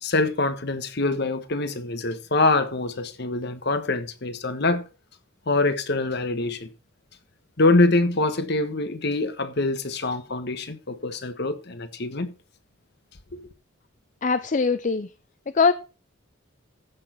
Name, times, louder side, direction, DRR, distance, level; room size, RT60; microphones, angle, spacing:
voice 1, 0.0-4.8 5.5-6.7 7.6-12.3 13.3-13.4, left 2 dB, 55° left, 1.3 m, -24 dB
voice 2, 14.2-15.1 15.5-15.7, left 5 dB, 40° left, 0.5 m, -21 dB
14.5 x 6.3 x 4.5 m
head